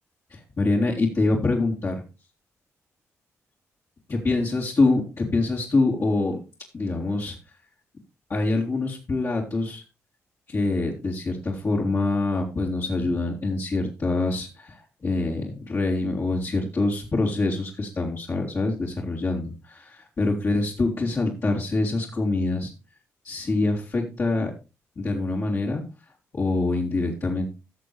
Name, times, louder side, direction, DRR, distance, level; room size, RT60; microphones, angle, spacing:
voice 1, 0.3-1.9 4.1-6.4 6.7-7.4 8.3-9.8 10.5-22.7 23.2-24.5 25.0-25.8 26.3-27.5, left 2 dB, 45° left, -5 dB, 3.4 m, -25 dB
16.0 x 6.6 x 3.3 m, 0.29 s
supercardioid pair, 55°, 6 cm